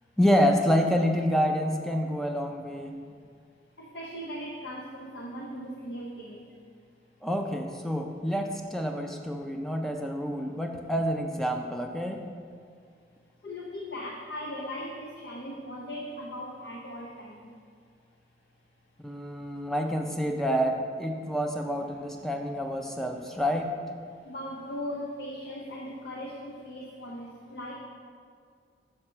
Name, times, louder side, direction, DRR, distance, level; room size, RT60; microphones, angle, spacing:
voice 1, 0.2-2.9 7.2-12.2 19.0-23.7, equal, ahead, 3 dB, 0.5 m, -28 dB
voice 2, 3.8-6.4 13.4-17.4 24.3-27.7, equal, 70° left, -2 dB, 0.7 m, -38 dB
6.5 x 4.4 x 6.0 m, 2.2 s
head